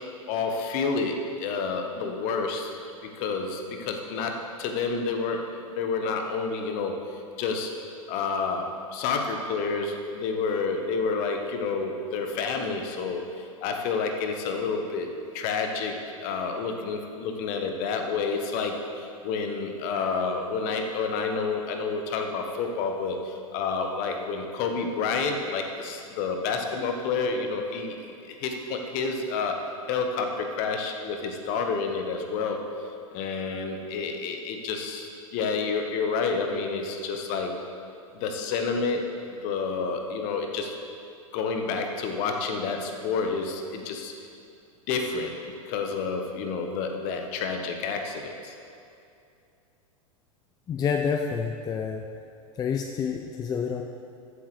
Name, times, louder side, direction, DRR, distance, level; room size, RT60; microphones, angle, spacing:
voice 1, 0.3-2.8 3.0-7.7 8.1-29.6 29.9-32.6 33.1-37.6 38.1-40.8 41.3-44.1 44.9-48.5, left 4 dB, 45° left, 4 dB, 1.3 m, -29 dB
voice 2, 50.7-52.0 52.6-53.8, left 6 dB, 20° left, 3 dB, 0.5 m, -28 dB
14.0 x 8.0 x 3.3 m, 2.6 s
figure-of-eight pair, 95°, 18 cm